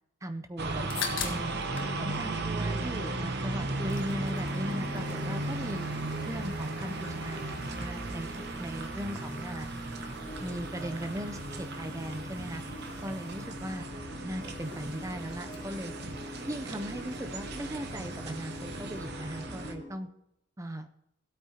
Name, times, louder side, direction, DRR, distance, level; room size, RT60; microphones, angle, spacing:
voice 1, 0.2-1.5 2.0-5.8 6.3-8.3 8.6-9.7 10.4-12.6 13.0-13.9 14.2-15.9 16.5-20.1 20.6-20.9, equal, 15° right, 9 dB, 0.6 m, -38 dB
sound 1, 0.6-1.9 2.2-3.2 3.6-19.1, left 6 dB, 60° left, 1.4 m, -47 dB
sound 2, 0.6-19.8, right 2 dB, 50° right, 0.9 m, -36 dB
sound 3, 2.6-19.9, equal, 25° left, 4.1 m, -44 dB
16.0 x 8.4 x 2.9 m, 0.84 s
head